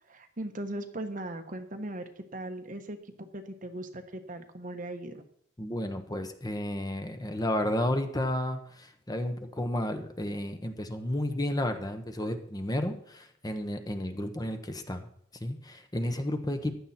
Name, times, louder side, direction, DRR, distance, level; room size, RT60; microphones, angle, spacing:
voice 1, 0.0-5.2, right 1 dB, 45° right, 6 dB, 1.3 m, -39 dB
voice 2, 5.6-15.1 15.4-16.7, left 1 dB, 20° left, 7 dB, 1.1 m, -32 dB
15.0 x 11.0 x 4.3 m, 0.66 s
head